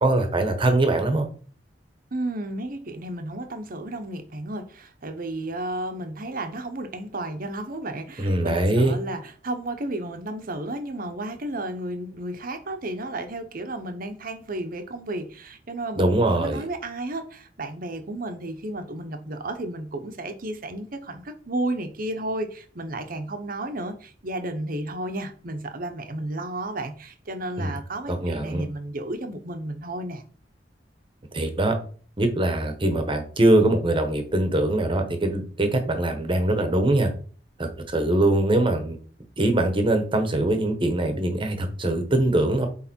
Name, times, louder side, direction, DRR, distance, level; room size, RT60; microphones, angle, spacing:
voice 1, 0.0-1.3 8.2-9.0 16.0-16.6 27.6-27.7 28.1-28.6 31.3-31.8 32.2-37.1 37.6-39.0 39.4-42.7, right 1 dB, 30° right, 6 dB, 1.1 m, -22 dB
voice 2, 2.1-30.2, right 1 dB, 50° right, 7 dB, 1.0 m, -33 dB
8.0 x 3.4 x 4.4 m, 0.43 s
head